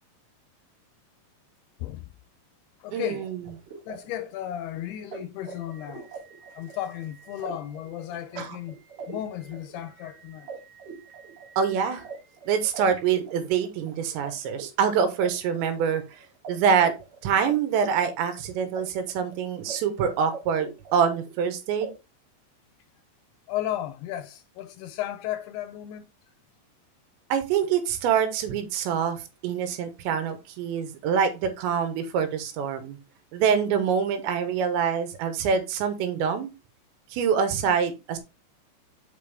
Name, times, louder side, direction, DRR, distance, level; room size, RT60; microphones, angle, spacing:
voice 1, 1.8-2.1 2.8-3.3 3.9-6.2 6.5-8.8 9.1-10.5 23.5-26.1, left 12 dB, 80° left, 2.4 m, -34 dB
voice 2, 2.9-3.4 8.4-8.5 11.6-12.1 12.5-16.9 17.2-21.9 27.3-33.0 33.3-36.5 37.1-38.2, right 7 dB, 85° right, 3.4 m, -25 dB
sound 1, 3.2-14.3 14.6-16.1 16.4-16.5 16.8-18.8 19.1-19.7 20.0-21.4 21.8-21.9, right 6 dB, 50° right, 2.0 m, -43 dB
7.5 x 5.4 x 3.4 m
omnidirectional pair, 5.0 m